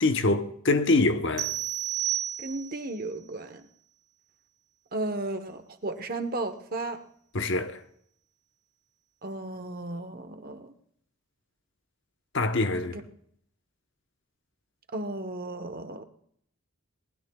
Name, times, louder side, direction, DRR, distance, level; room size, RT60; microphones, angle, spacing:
voice 1, 0.0-1.5 7.3-7.8 12.3-12.9, left 2 dB, 55° left, 1.0 m, -24 dB
sound 1, 1.4-2.9, right 13 dB, 85° right, 1.3 m, -31 dB
voice 2, 2.4-3.6 4.9-7.0 9.2-10.7 12.9-13.0 14.9-16.0, right 2 dB, 40° right, 1.1 m, -34 dB
22.5 x 19.5 x 2.4 m
head